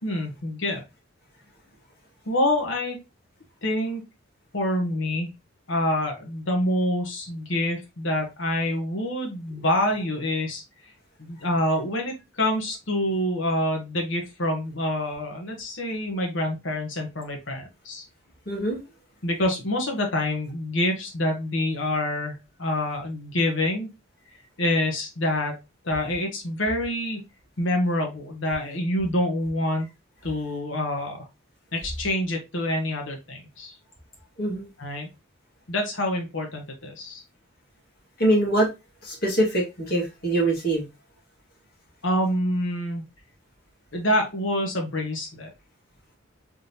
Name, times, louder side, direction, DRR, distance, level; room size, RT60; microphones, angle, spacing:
voice 1, 0.0-0.8 2.3-3.0 3.6-4.0 4.5-5.3 5.7-10.6 11.2-18.0 19.2-23.9 24.6-25.6 25.8-27.2 27.6-29.9 30.2-31.3 31.7-33.7 34.8-35.1 35.7-37.2 42.0-43.0 43.9-45.5, left 1 dB, 65° left, 2 dB, 1.3 m, -26 dB
voice 2, 18.5-18.8 34.4-34.7 38.2-38.7 39.0-40.9, right 1 dB, 50° left, -1 dB, 1.8 m, -23 dB
3.6 x 3.6 x 2.8 m, 0.24 s
head